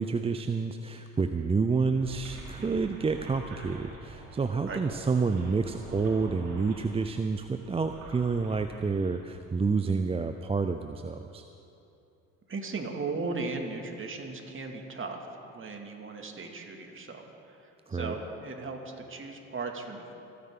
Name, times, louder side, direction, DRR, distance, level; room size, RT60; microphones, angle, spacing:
voice 1, 0.0-11.4 17.9-18.1, right 4 dB, 15° right, 7 dB, 0.5 m, -29 dB
sound 1, 2.0-9.1, right 2 dB, 85° right, 3.0 m, -46 dB
voice 2, 12.5-20.1, right 3 dB, 30° right, 2 dB, 2.3 m, -37 dB
27.5 x 9.7 x 3.8 m, 2.7 s
hypercardioid pair, 60°, 38 cm